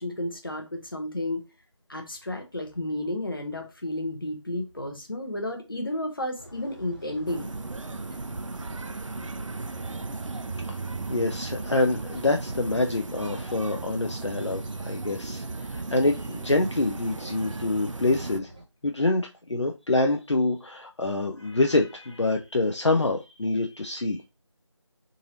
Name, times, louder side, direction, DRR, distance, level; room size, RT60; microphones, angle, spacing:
voice 1, 0.0-1.4 1.9-7.5, left 1 dB, 45° left, 1.0 m, -32 dB
sound 1, 6.4-18.6, right 1 dB, 15° right, 0.9 m, -47 dB
sound 2, 7.3-18.4, right 3 dB, 75° right, 0.5 m, -36 dB
voice 2, 11.1-18.5 18.8-24.2, left 2 dB, 65° left, 0.6 m, -26 dB
3.8 x 2.6 x 2.9 m
figure-of-eight pair, 170°, 16 cm